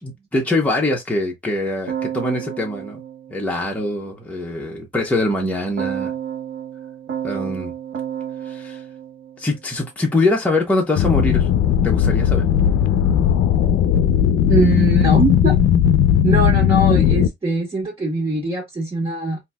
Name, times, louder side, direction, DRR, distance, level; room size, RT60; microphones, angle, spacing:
voice 1, 0.0-3.0 3.3-6.1 7.2-7.7 8.4-8.8 9.4-11.5 11.8-12.5, left 2 dB, 5° left, 1.0 m, -23 dB
Keyboard (musical), 1.9-4.2 5.8-10.1, right 9 dB, 65° right, 1.1 m, -31 dB
sound 1, 11.0-17.3, left 9 dB, 80° left, 0.5 m, -16 dB
voice 2, 14.5-15.6 16.2-19.4, right 2 dB, 25° right, 1.9 m, -22 dB
3.8 x 2.8 x 2.2 m
cardioid pair, 90°, 20 cm